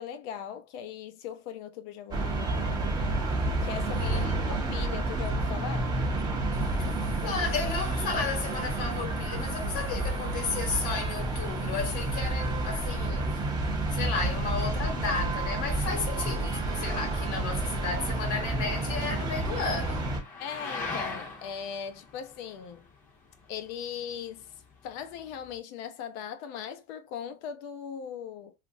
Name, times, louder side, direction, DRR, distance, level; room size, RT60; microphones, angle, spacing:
voice 1, 0.0-3.0 3.6-5.9 20.4-22.9 23.5-24.5 24.8-28.5, left 8 dB, 80° left, 0.7 m, -39 dB
sound 1, 2.1-20.2, right 2 dB, 15° right, 0.5 m, -30 dB
voice 2, 4.0-4.4 6.8-13.4 13.9-20.2, left 5 dB, 60° left, 1.2 m, -33 dB
sound 2, 17.5-25.6, left 3 dB, 25° left, 0.7 m, -43 dB
3.0 x 2.5 x 2.6 m
cardioid pair, 175°, 33 cm